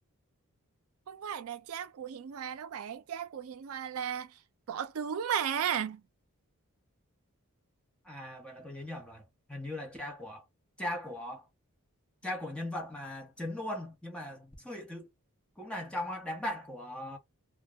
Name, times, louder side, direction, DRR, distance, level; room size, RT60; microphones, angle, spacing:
voice 1, 1.1-4.4 4.7-6.0, right 8 dB, 70° right, 0.4 m, -35 dB
voice 2, 8.0-10.5 10.8-11.5 12.2-15.1 15.6-17.2, left 1 dB, 5° left, 0.7 m, -39 dB
2.1 x 2.0 x 3.4 m
head